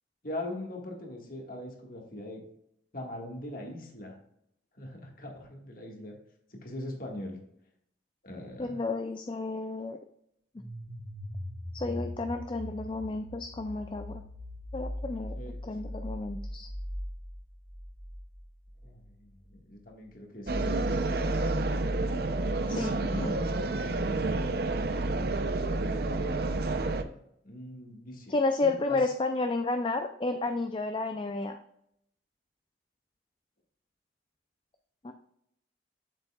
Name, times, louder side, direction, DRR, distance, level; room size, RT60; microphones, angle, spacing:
voice 1, 0.2-2.4 2.9-4.2 4.8-6.1 6.6-7.4 8.2-8.8 15.4-15.6 18.8-20.8 22.7-23.8 27.4-28.3 28.6-29.0, left 1 dB, 50° left, 1 dB, 1.7 m, -41 dB
voice 2, 8.6-10.0 11.7-14.2 14.7-15.4 15.6-16.7 22.7-23.4 28.3-31.6 35.0-35.1, left 3 dB, 30° left, 7 dB, 0.4 m, -31 dB
sound 1, 10.6-19.3, equal, 30° right, 1.2 m, -40 dB
sound 2, 20.5-27.0, right 2 dB, 60° right, 0.6 m, -29 dB
7.8 x 7.0 x 2.3 m, 0.73 s
head